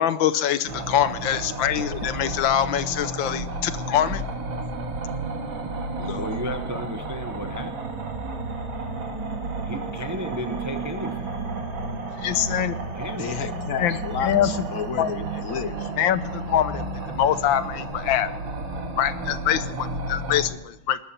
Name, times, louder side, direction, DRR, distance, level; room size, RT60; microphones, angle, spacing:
voice 1, 0.0-4.2 12.2-12.8 13.8-14.5 15.0-15.1 16.0-18.3 19.0-21.0, left 10 dB, 80° left, 14 dB, 1.5 m, -24 dB
sound 1, 0.7-20.5, right 2 dB, 85° right, 2.9 m, -32 dB
voice 2, 5.4-5.8 6.1-7.7 9.6-11.3 11.9-12.1 12.9-13.4, equal, 15° right, 7 dB, 0.6 m, -34 dB
voice 3, 6.0-6.3 13.2-15.9, left 7 dB, 60° left, 12 dB, 0.9 m, -32 dB
21.0 x 12.5 x 4.3 m, 0.92 s
omnidirectional pair, 2.1 m